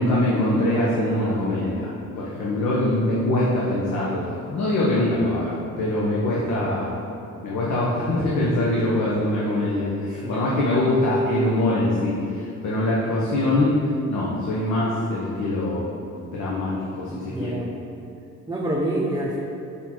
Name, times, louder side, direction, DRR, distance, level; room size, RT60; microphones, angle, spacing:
voice 1, 0.0-7.0 7.4-13.8 14.1-15.9 16.3-17.6, left 1 dB, 80° left, -6 dB, 1.2 m, -23 dB
voice 2, 10.2-10.5 17.1-17.8 18.5-19.4, right 1 dB, 15° right, -4 dB, 0.8 m, -27 dB
6.2 x 5.7 x 4.5 m, 2.8 s
cardioid pair, 90°, 30 cm